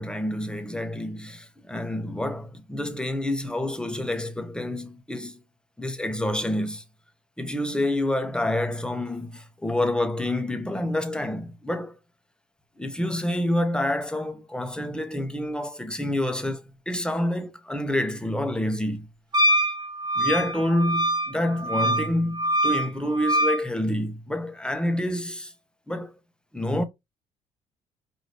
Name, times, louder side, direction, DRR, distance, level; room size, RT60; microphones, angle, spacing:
voice 1, 0.0-5.4 5.8-6.8 7.4-12.0 12.8-19.1 20.2-25.5 25.9-26.1 26.5-26.8, left 1 dB, 5° left, 1.0 m, -28 dB
Wind instrument woodwind instrument, 19.3-23.6, right 1 dB, 30° right, 1.1 m, -24 dB
4.9 x 2.7 x 3.0 m
supercardioid pair, 65°, 14 cm